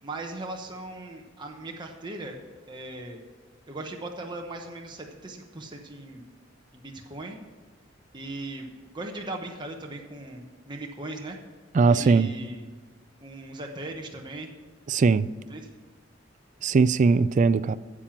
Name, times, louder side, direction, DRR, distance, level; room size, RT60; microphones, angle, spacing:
voice 1, 0.0-2.4 2.7-3.2 3.7-6.2 6.7-7.4 8.1-11.4 11.8-12.6 13.2-14.5 15.5-15.7, right 2 dB, 25° right, 1.0 m, -38 dB
voice 2, 11.7-12.3 14.9-15.3 16.6-17.8, right 4 dB, 40° right, 0.3 m, -20 dB
9.8 x 7.5 x 7.2 m
head